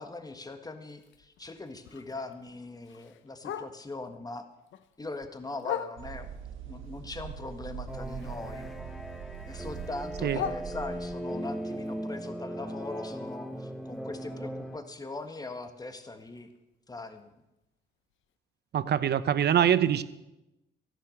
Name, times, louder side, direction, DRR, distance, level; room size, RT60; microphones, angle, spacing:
voice 1, 0.0-4.5 5.0-6.3 6.6-8.8 9.4-16.5 16.9-17.3, left 3 dB, 20° left, 7 dB, 1.6 m, -41 dB
Bark, 0.9-4.1 4.5-6.4 6.8-8.7 8.9-11.3 11.7-15.6 16.0-16.1 16.4-16.7 17.2-17.3 17.6-17.7 18.2-18.3, left 9 dB, 75° left, 0.8 m, -42 dB
sound 1, 6.0-11.1, right 8 dB, 80° right, 1.3 m, -42 dB
sound 2, 7.9-14.8, equal, ahead, 1.1 m, -38 dB
voice 2, 18.7-20.0, right 10 dB, 55° right, 16 dB, 0.8 m, -24 dB
13.5 x 11.0 x 6.4 m, 0.94 s
cardioid pair, 90°, 20 cm